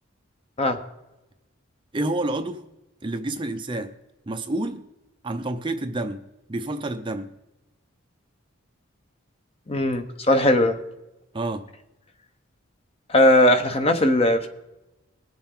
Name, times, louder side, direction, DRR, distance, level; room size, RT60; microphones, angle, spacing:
voice 1, 1.9-2.6 3.0-3.9 4.3-4.9 5.2-7.3 11.3-11.7, right 2 dB, 25° right, 0.6 m, -29 dB
voice 2, 9.7-10.8 13.1-14.5, left 1 dB, 30° left, 0.9 m, -19 dB
20.5 x 7.2 x 3.8 m
head